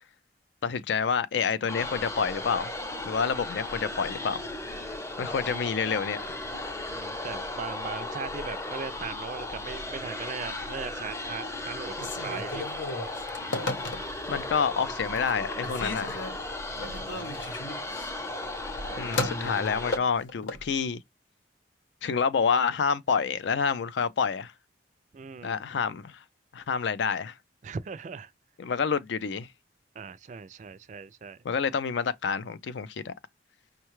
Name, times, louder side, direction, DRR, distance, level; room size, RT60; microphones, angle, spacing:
voice 1, 0.6-2.7 3.1-4.4 5.2-6.4 14.3-16.2 19.0-21.0 22.0-24.5 25.4-26.2 26.5-27.3 28.6-29.5 31.4-33.1, left 6 dB, 70° left, 0.4 m, -28 dB
sound 1, 1.7-20.0, left 2 dB, 15° left, 0.5 m, -36 dB
voice 2, 6.9-12.6 16.7-17.5 25.1-25.6 27.6-28.3 30.0-31.4, right 5 dB, 40° right, 0.3 m, -39 dB
Telephone, 11.9-14.4 14.8-15.3 15.6-20.7, left 2 dB, 85° left, 0.8 m, -35 dB
5.5 x 2.2 x 3.0 m
head